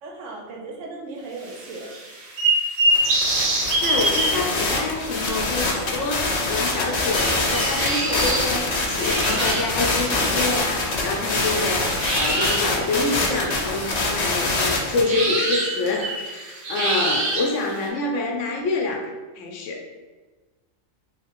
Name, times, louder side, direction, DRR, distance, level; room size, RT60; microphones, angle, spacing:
voice 1, 0.0-1.9, right 3 dB, 70° right, 0 dB, 0.9 m, -36 dB
sound 1, 1.4-5.0 5.7-5.8 6.5-11.6 12.0-17.9, right 1 dB, 90° right, 1.2 m, -26 dB
sound 2, 2.9-15.0, left 2 dB, 50° left, 0.5 m, -25 dB
voice 2, 3.5-19.1 19.4-19.8, left 3 dB, 70° left, 2 dB, 0.9 m, -27 dB
3.3 x 2.8 x 2.9 m, 1.3 s
omnidirectional pair, 1.4 m